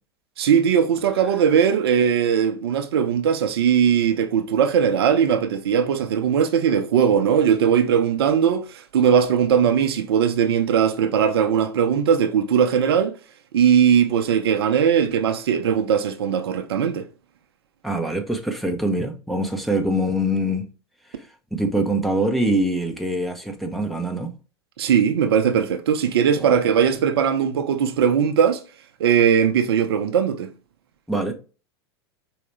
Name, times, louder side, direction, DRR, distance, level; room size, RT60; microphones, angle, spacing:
voice 1, 0.4-8.7 8.9-13.1 13.5-17.1 24.8-28.6 29.0-30.5, right 8 dB, 70° right, 0.7 m, -19 dB
voice 2, 17.8-20.7 21.5-24.3 26.4-26.6 31.1-31.3, right 1 dB, ahead, 0.9 m, -24 dB
4.8 x 2.9 x 3.3 m
figure-of-eight pair, 90°, 14 cm